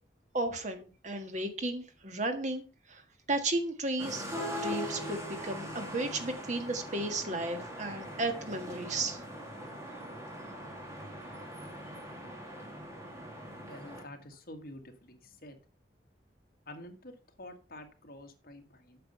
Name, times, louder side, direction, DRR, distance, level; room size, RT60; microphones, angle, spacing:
voice 1, 0.3-3.0 3.3-4.3 4.6-9.2, right 2 dB, 40° right, 6 dB, 1.5 m, -34 dB
sound 1, 4.0-14.0, equal, 15° right, 2.2 m, -41 dB
voice 2, 13.6-15.6 16.7-19.0, left 1 dB, 55° left, 5 dB, 1.8 m, -48 dB
8.8 x 6.6 x 5.6 m, 0.34 s
head